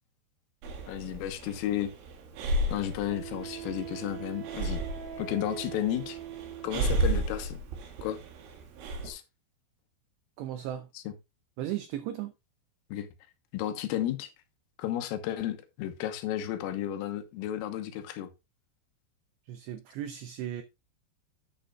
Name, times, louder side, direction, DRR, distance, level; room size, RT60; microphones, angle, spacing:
Breathing, 0.6-9.1, right 1 dB, 70° right, 4.4 m, -33 dB
voice 1, 0.9-1.9 2.7-4.8 5.2-6.2 6.6-7.6 8.0-8.2 9.0-9.2 11.0-11.1 12.9-13.1 13.5-14.3 14.8-18.3, left 11 dB, 80° left, 3.7 m, -33 dB
Wind instrument woodwind instrument, 1.8-1.9 3.1-7.2, right 10 dB, 45° right, 4.0 m, -42 dB
voice 2, 10.4-10.9 11.6-12.3 19.5-20.6, right 12 dB, 90° right, 2.4 m, -36 dB
10.0 x 8.9 x 2.4 m
omnidirectional pair, 6.0 m